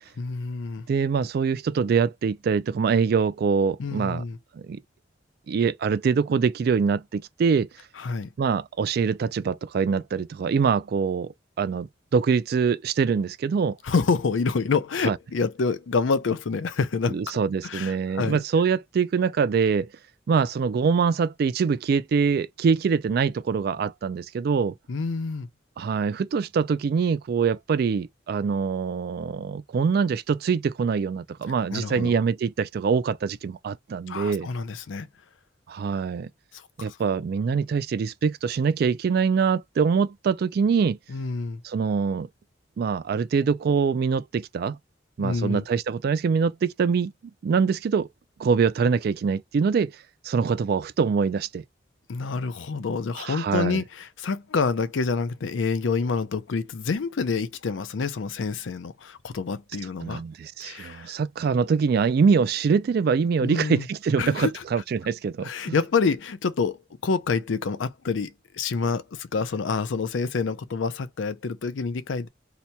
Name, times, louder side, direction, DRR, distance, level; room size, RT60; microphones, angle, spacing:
voice 1, 0.2-0.9 3.8-4.4 8.0-8.3 13.8-17.2 17.6-18.4 24.9-25.5 31.7-32.2 34.1-35.1 36.5-37.0 41.1-41.6 45.2-45.6 52.1-60.2 60.6-61.2 63.4-63.9 64.2-64.6 65.4-72.3, left 4 dB, 85° left, 0.5 m, -27 dB
voice 2, 0.9-4.2 4.5-4.8 5.5-7.7 8.4-11.3 11.6-13.8 15.0-15.2 17.1-19.9 20.3-24.7 25.8-34.5 35.7-36.3 36.8-41.0 41.6-42.3 42.8-44.8 45.2-47.1 47.4-48.1 48.4-49.9 50.2-51.6 53.2-53.8 60.0-65.7, right 5 dB, 55° right, 0.3 m, -24 dB
2.8 x 2.2 x 4.0 m
head